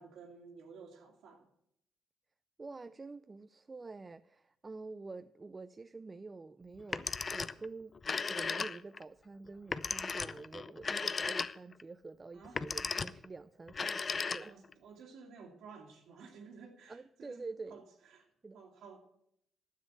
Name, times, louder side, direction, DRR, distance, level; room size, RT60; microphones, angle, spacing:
voice 1, 0.0-1.5 12.3-12.6 14.4-17.4 17.7-19.0, right 5 dB, 80° right, 2.0 m, -54 dB
voice 2, 2.6-7.9 8.3-14.0 14.3-14.5 16.9-17.8 18.4-18.6, right 3 dB, 25° right, 0.4 m, -47 dB
Telephone, 6.8-7.7 8.0-9.0 9.7-11.8 12.4-13.3 13.7-14.7, left 4 dB, 35° left, 0.5 m, -36 dB
9.6 x 7.5 x 9.0 m
cardioid pair, 90°, 0 cm